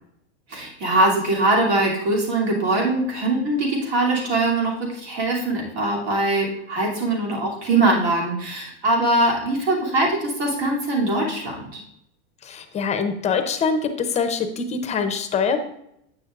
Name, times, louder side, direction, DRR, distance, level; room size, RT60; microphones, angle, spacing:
voice 1, 0.5-11.8, right 2 dB, 65° right, -2 dB, 2.7 m, -22 dB
voice 2, 12.4-15.6, left 5 dB, 20° left, 6 dB, 0.6 m, -24 dB
8.7 x 6.1 x 2.4 m, 0.78 s
supercardioid pair, 135°, 34 cm